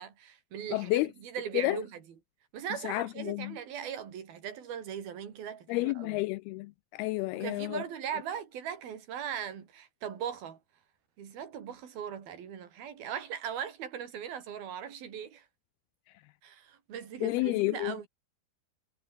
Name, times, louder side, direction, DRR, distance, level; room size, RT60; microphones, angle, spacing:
voice 1, 0.0-2.0 2.5-6.2 7.3-10.6 11.2-15.4 16.4-18.1, right 8 dB, 60° right, 5.1 m, -39 dB
voice 2, 0.7-1.1 1.5-1.8 2.8-3.6 5.7-7.8 17.2-17.9, left 20 dB, 90° left, 2.2 m, -30 dB
omnidirectional pair, 5.0 m